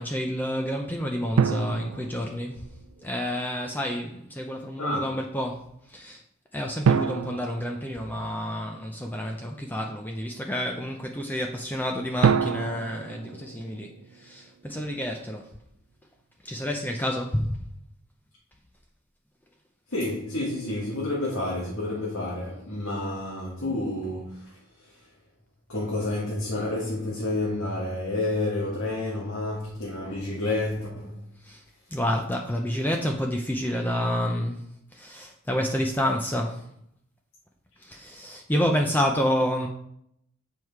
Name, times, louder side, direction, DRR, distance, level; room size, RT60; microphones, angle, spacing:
voice 1, 0.0-2.6 3.0-5.6 5.9-6.2 6.5-15.4 16.4-17.6 31.4-31.6 31.9-34.6 34.9-36.6 37.8-39.7, equal, 10° left, 0.6 m, -29 dB
sound 1, 1.4-3.0 6.8-8.7 12.2-14.5, right 6 dB, 75° right, 0.4 m, -27 dB
voice 2, 19.9-24.6 24.9-25.0 25.7-31.2, left 2 dB, 75° left, 1.9 m, -29 dB
7.6 x 4.7 x 4.6 m
head